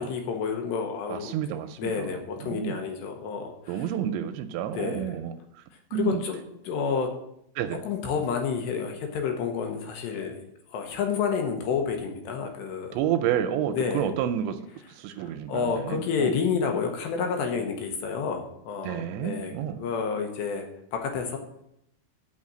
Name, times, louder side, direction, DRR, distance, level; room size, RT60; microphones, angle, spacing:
voice 1, 0.0-1.3 1.8-3.9 4.7-5.2 5.9-6.4 6.6-7.1 7.8-10.3 10.7-13.0 13.7-14.1 15.2-20.7 20.9-21.4, left 6 dB, 75° left, 3 dB, 2.9 m, -29 dB
voice 2, 1.1-1.9 2.4-2.8 3.7-5.3 5.9-6.2 7.6-7.8 12.9-14.6 15.0-16.3 18.8-19.8, right 9 dB, 85° right, 8 dB, 2.7 m, -29 dB
6.5 x 6.0 x 7.4 m, 0.76 s
omnidirectional pair, 5.4 m